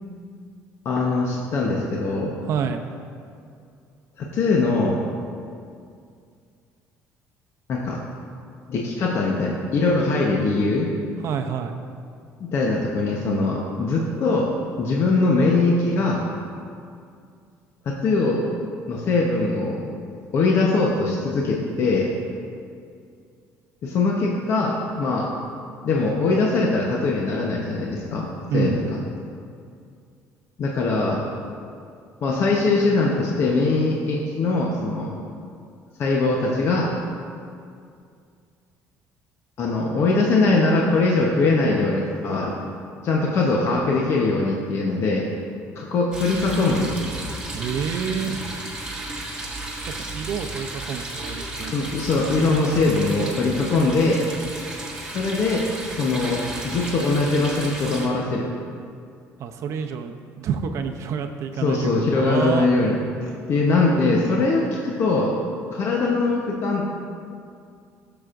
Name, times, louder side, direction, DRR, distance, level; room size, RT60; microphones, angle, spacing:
voice 1, 0.8-2.4 4.2-5.0 7.7-8.0 8.7-10.9 12.4-14.5 14.8-16.2 17.9-18.4 18.9-19.8 20.3-22.1 23.8-25.3 25.8-28.3 28.5-29.0 30.6-31.2 32.2-35.1 36.0-36.9 39.6-42.5 43.0-45.3 45.7-47.0 48.2-48.4 51.7-54.2 55.1-58.5 61.6-63.0 63.2-65.3 65.7-66.9, left 3 dB, 50° left, -2 dB, 1.0 m, -21 dB
voice 2, 2.4-2.8 11.2-11.8 28.5-28.8 47.5-48.4 50.0-51.9 59.4-62.7, right 7 dB, 55° right, 6 dB, 0.6 m, -28 dB
sound 1, 46.1-58.1, right 2 dB, 10° right, 1.5 m, -33 dB
15.0 x 6.9 x 2.6 m, 2.4 s
cardioid pair, 130°, 6 cm